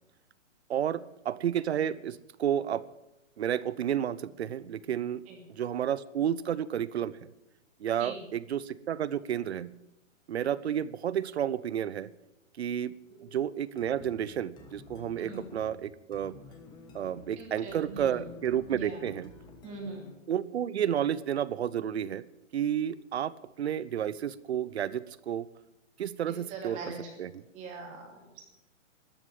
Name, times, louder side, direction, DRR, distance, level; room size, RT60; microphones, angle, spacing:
voice 1, 0.7-2.9 3.4-5.2 5.5-7.2 7.8-9.7 10.3-12.1 12.6-12.9 13.2-16.4 16.9-19.3 20.3-22.2 22.5-23.3 23.6-25.5 26.0-26.8 27.2-27.3, right 9 dB, 55° right, 18 dB, 0.7 m, -31 dB
sound 1, 13.8-20.3, left 4 dB, 10° left, 1.2 m, -51 dB
voice 2, 17.4-18.3 18.7-19.0 19.6-20.1 26.5-27.0 27.5-28.4, right 4 dB, 20° right, 1 dB, 2.7 m, -41 dB
13.0 x 9.7 x 9.4 m, 0.90 s
hypercardioid pair, 160°, 39 cm